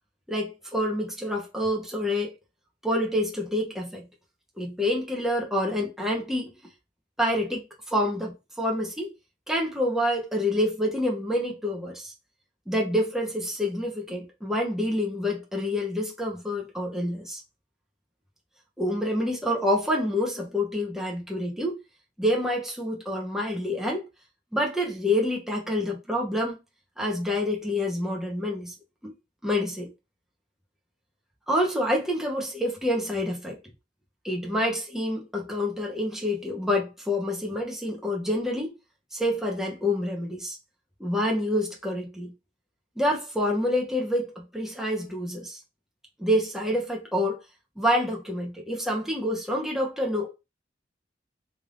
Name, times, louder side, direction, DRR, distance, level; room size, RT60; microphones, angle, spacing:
voice 1, 0.3-2.3 2.8-4.0 4.6-6.5 7.2-7.6 7.9-9.1 9.5-12.1 12.7-17.4 18.8-21.8 22.2-24.0 24.5-26.6 27.0-28.7 29.0-29.1 29.4-29.9 31.5-33.6 34.2-38.7 39.1-40.6 41.0-42.3 43.0-45.6 46.2-47.4 47.8-50.3, left 1 dB, ahead, 0.9 m, -27 dB
3.4 x 2.6 x 3.8 m
head